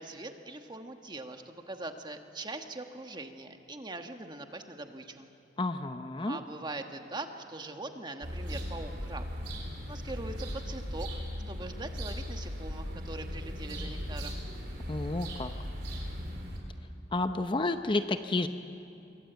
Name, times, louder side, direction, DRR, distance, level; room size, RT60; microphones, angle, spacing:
voice 1, 0.0-5.3 6.3-9.2 9.9-14.4, right 2 dB, 25° right, 5 dB, 1.5 m, -42 dB
voice 2, 5.6-6.4 14.9-15.5 17.1-18.5, left 2 dB, 25° left, 8 dB, 0.7 m, -30 dB
sound 1, 8.2-16.6, equal, 65° right, 4.7 m, -38 dB
26.5 x 24.0 x 8.2 m, 2.8 s
head